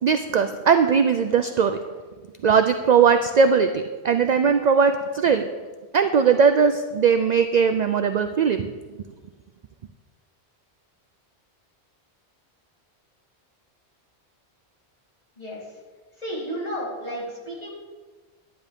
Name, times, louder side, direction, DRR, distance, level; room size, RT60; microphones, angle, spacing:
voice 1, 0.0-1.8 2.4-5.5 5.9-8.7, right 6 dB, 55° right, 8 dB, 0.5 m, -19 dB
voice 2, 16.2-17.7, equal, 35° left, -8 dB, 3.7 m, -32 dB
10.5 x 10.5 x 3.5 m, 1.4 s
omnidirectional pair, 1.1 m